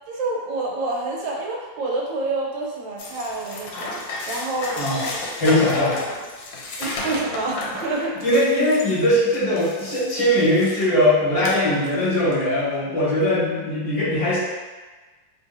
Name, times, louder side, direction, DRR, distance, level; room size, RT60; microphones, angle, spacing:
voice 1, 0.1-3.9 4.3-5.2 6.8-8.1, right 2 dB, 85° right, -1 dB, 1.4 m, -28 dB
sound 1, 3.0-10.9 11.4-12.4, left 2 dB, 80° left, 1.3 m, -33 dB
voice 2, 5.4-6.0 8.0-14.4, left 1 dB, 20° left, -10 dB, 1.0 m, -20 dB
3.2 x 2.6 x 2.5 m, 1.3 s
omnidirectional pair, 2.0 m